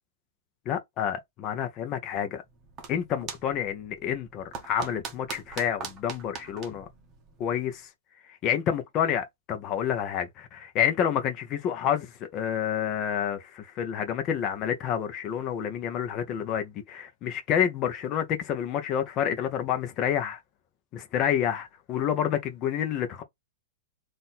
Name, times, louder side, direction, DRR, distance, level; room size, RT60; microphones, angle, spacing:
voice 1, 0.7-2.4 2.9-6.9 7.4-7.9 8.2-20.4 20.9-23.2, left 9 dB, 30° left, 0.8 m, -29 dB
sound 1, 2.4-7.8, right 6 dB, 25° right, 0.9 m, -42 dB
3.9 x 2.6 x 4.1 m
supercardioid pair, 150°, 0 cm